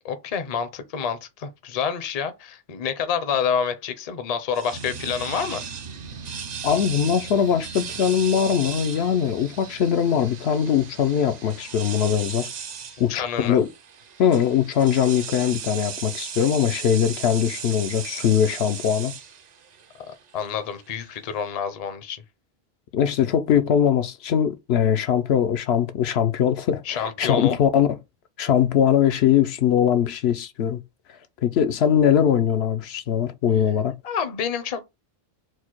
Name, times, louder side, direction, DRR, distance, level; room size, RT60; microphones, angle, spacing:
voice 1, 0.0-5.6 13.1-13.6 20.1-22.2 26.8-27.6 34.0-34.8, left 7 dB, 45° left, 0.6 m, -28 dB
sound 1, 4.5-21.4, right 7 dB, 50° right, 0.6 m, -37 dB
sound 2, 4.7-13.4, right 5 dB, 70° right, 1.0 m, -43 dB
voice 2, 6.6-12.5 13.0-13.7 14.2-19.1 22.9-27.9 28.4-30.8 31.4-33.9, left 9 dB, 80° left, 0.8 m, -21 dB
4.6 x 2.1 x 4.4 m
omnidirectional pair, 1.1 m